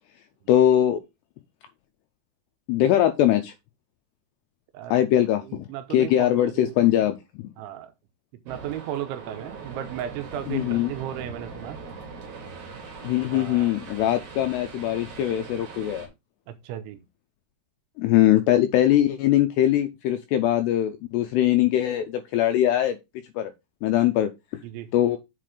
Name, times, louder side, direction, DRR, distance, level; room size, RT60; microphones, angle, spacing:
voice 1, 0.5-1.0 2.7-3.5 4.9-5.7 5.9-7.5 10.5-10.9 13.0-16.1 18.0-23.0 23.4-23.5 23.8-24.6 24.9-25.2, left 12 dB, 85° left, 2.4 m, -21 dB
voice 2, 5.4-6.8 7.6-7.9 8.5-11.8 13.3-13.8 16.5-17.0 24.6-24.9, right 11 dB, 85° right, 3.2 m, -35 dB
sound 1, 8.5-16.1, right 4 dB, 45° right, 3.0 m, -41 dB
7.6 x 4.6 x 4.8 m
omnidirectional pair, 5.4 m